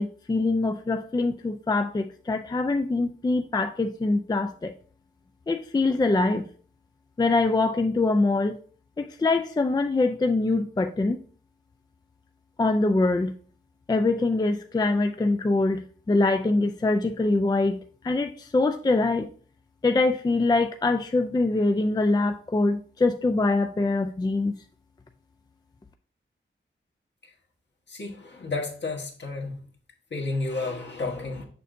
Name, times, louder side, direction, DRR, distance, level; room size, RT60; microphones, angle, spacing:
voice 1, 0.0-4.7 5.5-6.5 7.2-8.6 9.0-11.2 12.6-13.3 13.9-17.8 18.0-19.3 19.8-24.5, left 2 dB, 20° left, 6 dB, 0.4 m, -24 dB
voice 2, 27.9-29.6 30.1-31.5, left 3 dB, 60° left, 1 dB, 1.4 m, -31 dB
6.7 x 6.4 x 2.6 m, 0.43 s
wide cardioid pair, 105°, 21 cm